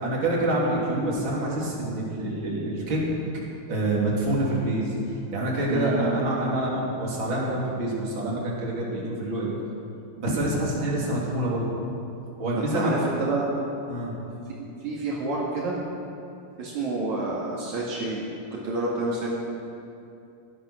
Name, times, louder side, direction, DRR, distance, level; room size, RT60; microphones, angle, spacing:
voice 1, 0.0-3.0 3.7-4.9 5.3-9.5 10.2-11.7 12.4-13.0 13.9-14.1, right 1 dB, 40° right, -5 dB, 3.8 m, -26 dB
voice 2, 12.5-13.6 14.5-15.8 16.6-19.3, right 2 dB, 70° right, -4 dB, 3.4 m, -29 dB
17.5 x 12.5 x 6.4 m, 2.6 s
omnidirectional pair, 3.5 m